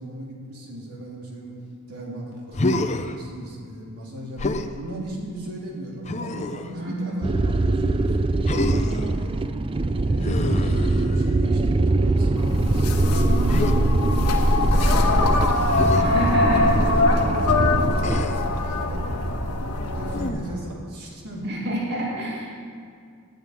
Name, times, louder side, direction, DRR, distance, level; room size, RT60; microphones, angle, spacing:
voice 1, 0.0-1.5 1.9-4.5 4.8-8.2 8.7-9.4 10.0-15.9 16.2-19.0 19.9-21.6 21.9-22.0, right 1 dB, 85° right, -3 dB, 3.0 m, -37 dB
Human voice, 2.5-3.1 4.4-4.7 6.0-6.7 8.4-9.1 10.2-11.4 13.5-13.8 15.7-16.0 18.0-18.5 20.1-20.6, left 2 dB, 30° left, 0.6 m, -27 dB
voice 2, 6.7-7.3 16.0-17.0 21.4-22.6, right 1 dB, 50° right, -3 dB, 2.3 m, -28 dB
sound 1, 7.2-18.2, right 2 dB, 25° right, 0.4 m, -23 dB
sound 2, 12.4-20.3, left 2 dB, 90° left, 1.5 m, -22 dB
11.0 x 9.3 x 9.3 m, 2.2 s
head